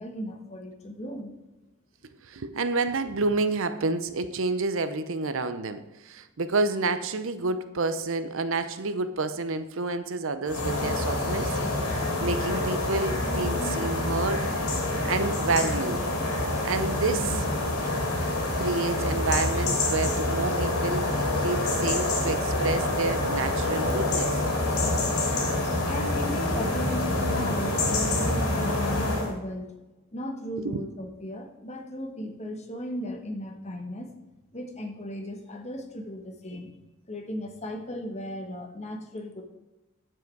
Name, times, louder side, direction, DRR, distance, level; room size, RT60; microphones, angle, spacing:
voice 1, 0.0-1.3 25.9-27.0 27.3-29.7 30.1-34.1 34.5-36.8 37.1-39.4, equal, 30° left, 3 dB, 1.4 m, -36 dB
voice 2, 2.2-11.6 11.9-14.5 15.0-16.1 16.6-17.5 18.6-21.1 21.4-24.4 30.6-30.9, right 3 dB, 60° right, 11 dB, 0.7 m, -29 dB
sound 1, 10.5-29.3, left 2 dB, 80° left, 2.7 m, -27 dB
9.4 x 7.7 x 4.7 m, 1.0 s
head